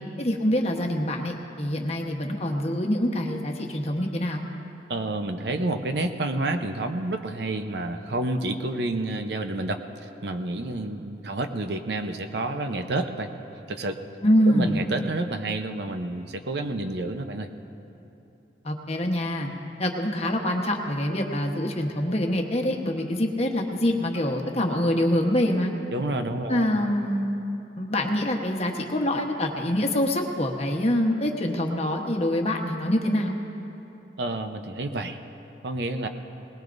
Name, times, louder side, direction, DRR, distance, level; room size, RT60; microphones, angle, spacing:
voice 1, 0.2-4.4 14.2-14.8 18.6-19.5 19.8-25.7 26.5-27.3 27.8-33.4, left 1 dB, 35° left, 2 dB, 1.1 m, -25 dB
voice 2, 4.9-13.3 13.7-14.0 14.5-17.5 25.9-26.8 34.2-35.2 35.6-36.1, right 2 dB, 60° right, 7 dB, 0.8 m, -29 dB
20.5 x 20.0 x 2.6 m, 2.9 s
head